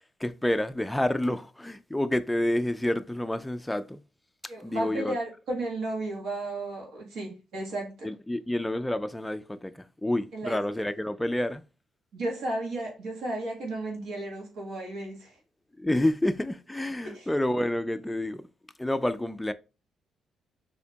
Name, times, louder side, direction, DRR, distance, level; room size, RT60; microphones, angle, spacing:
voice 1, 0.2-4.0 4.6-5.2 8.0-11.6 15.8-18.4 18.8-19.5, left 1 dB, 10° left, 0.3 m, -28 dB
voice 2, 4.5-8.1 10.3-10.6 12.1-15.3 17.0-17.3, right 2 dB, 80° right, 1.4 m, -34 dB
4.3 x 2.8 x 2.3 m
cardioid pair, 90°, 0 cm